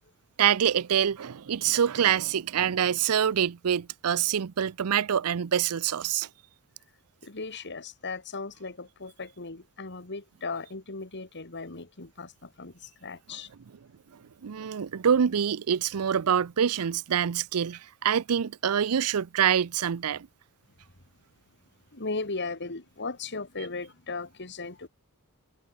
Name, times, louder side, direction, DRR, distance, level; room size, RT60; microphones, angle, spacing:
voice 1, 0.4-6.3 14.4-20.3, right 8 dB, 80° right, 0.5 m, -25 dB
voice 2, 7.2-13.5 21.9-24.9, left 3 dB, 55° left, 2.4 m, -37 dB
head